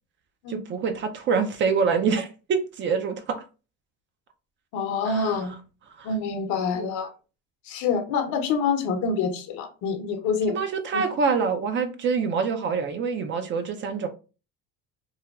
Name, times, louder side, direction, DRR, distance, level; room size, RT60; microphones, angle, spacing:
voice 1, 0.5-3.4 5.1-5.3 6.0-6.1 6.7-6.9 10.5-14.1, right 5 dB, 40° right, 0.4 m, -26 dB
voice 2, 4.7-5.6 6.0-7.1 7.6-10.6 10.9-11.0, left 5 dB, 70° left, 0.7 m, -26 dB
3.1 x 2.2 x 2.3 m
cardioid pair, 110°, 30 cm